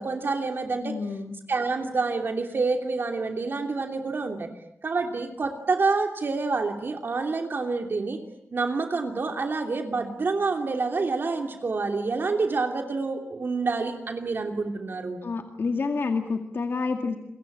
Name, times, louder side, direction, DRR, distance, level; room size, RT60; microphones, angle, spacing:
voice 1, 0.0-0.9 1.5-4.5 4.8-8.2 8.5-15.2, right 4 dB, 55° right, 4 dB, 2.9 m, -27 dB
voice 2, 0.8-1.4 15.2-17.2, left 4 dB, 60° left, 5 dB, 2.1 m, -28 dB
28.5 x 23.0 x 8.7 m, 0.81 s
wide cardioid pair, 145°, 4 cm